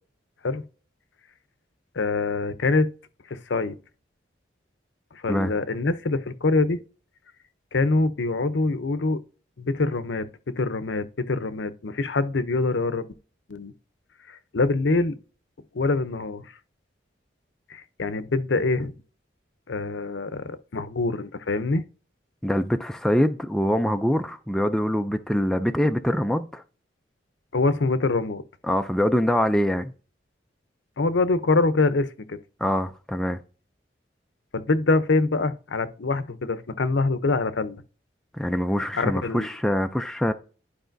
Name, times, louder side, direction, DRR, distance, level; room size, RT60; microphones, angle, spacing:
voice 1, 1.9-2.9 3.3-3.8 5.1-6.8 7.7-9.2 9.6-10.3 10.6-13.0 13.5-13.7 14.3-15.2 15.7-16.5 17.7-18.9 19.7-21.8 27.5-28.4 31.0-32.4 34.5-37.8 38.9-39.5, left 3 dB, 75° left, 0.6 m, -24 dB
voice 2, 22.4-26.6 28.6-29.9 32.6-33.4 38.4-40.3, equal, 5° left, 0.3 m, -24 dB
11.5 x 4.8 x 2.6 m
head